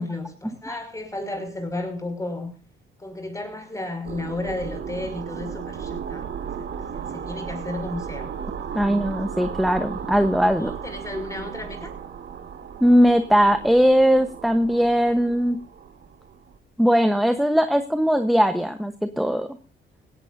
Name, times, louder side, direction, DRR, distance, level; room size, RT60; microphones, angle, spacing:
voice 1, 0.0-2.5 3.0-6.3 6.6-8.3 8.8-9.1 10.6-11.9, left 2 dB, 15° left, 6 dB, 5.7 m, -33 dB
sound 1, 4.0-16.6, right 7 dB, 60° right, 1.7 m, -35 dB
voice 2, 8.7-10.7 12.8-15.6 16.8-19.6, equal, ahead, 9 dB, 1.1 m, -19 dB
19.0 x 17.0 x 2.7 m, 0.33 s
cardioid pair, 90°, 20 cm